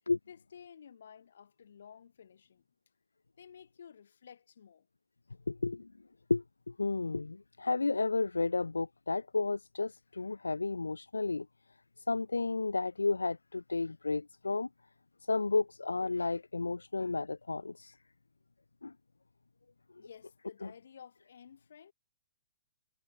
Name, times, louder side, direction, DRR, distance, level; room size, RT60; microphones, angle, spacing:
voice 1, 0.3-2.6 3.4-4.9 20.0-21.9, left 7 dB, 60° left, 2.2 m, -54 dB
voice 2, 5.5-5.9 6.3-11.5 12.1-14.7 15.3-18.0 18.8-18.9 20.6-20.7, left 3 dB, 75° left, 0.7 m, -32 dB
figure-of-eight pair, 115°, 0 cm